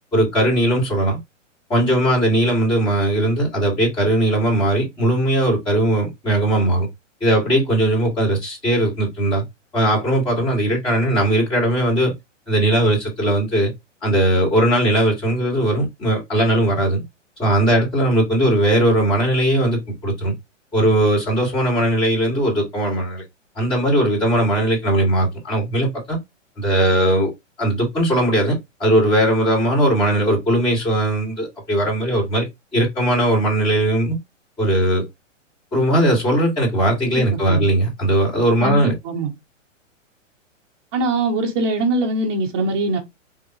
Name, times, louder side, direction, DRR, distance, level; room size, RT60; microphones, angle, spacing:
voice 1, 0.1-1.2 1.7-6.9 7.2-9.4 9.7-12.1 12.5-13.7 14.0-17.0 17.4-20.3 20.7-23.2 23.6-26.2 26.6-27.3 27.6-34.2 34.6-35.1 35.7-38.9, right 1 dB, 10° left, 1.9 m, -19 dB
voice 2, 37.3-37.6 38.6-39.3 40.9-43.0, right 2 dB, 20° right, 0.6 m, -22 dB
3.7 x 2.6 x 2.9 m
hypercardioid pair, 155°, 38 cm